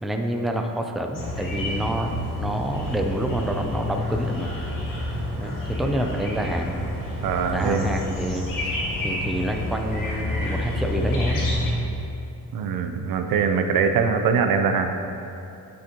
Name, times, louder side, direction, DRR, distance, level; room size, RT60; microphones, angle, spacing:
voice 1, 0.0-4.5 5.4-6.8 7.5-11.5, right 1 dB, ahead, 3 dB, 0.5 m, -28 dB
sound 1, 1.1-11.7, left 1 dB, 75° left, 1.8 m, -29 dB
voice 2, 7.2-7.9 12.5-14.9, right 6 dB, 85° right, 6 dB, 0.7 m, -22 dB
11.5 x 6.4 x 3.0 m, 2.7 s
cardioid pair, 120°, 34 cm